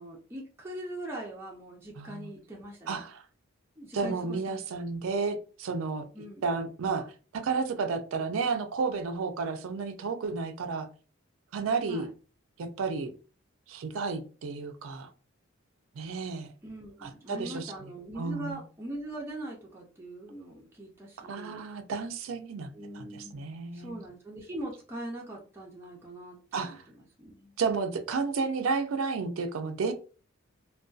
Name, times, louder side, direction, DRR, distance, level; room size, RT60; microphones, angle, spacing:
voice 1, 0.0-3.1 3.8-4.6 6.1-6.4 11.9-12.1 16.6-21.7 22.7-27.6, right 1 dB, 10° right, 0.4 m, -42 dB
voice 2, 2.0-2.3 2.9-3.2 3.9-6.0 6.4-10.9 11.5-12.1 12.6-13.1 13.7-15.1 16.0-16.5 17.0-17.7 18.2-18.6 21.2-22.7 22.9-24.0 26.5-26.8 27.6-29.9, right 4 dB, 80° right, 0.4 m, -32 dB
2.5 x 2.2 x 2.3 m
head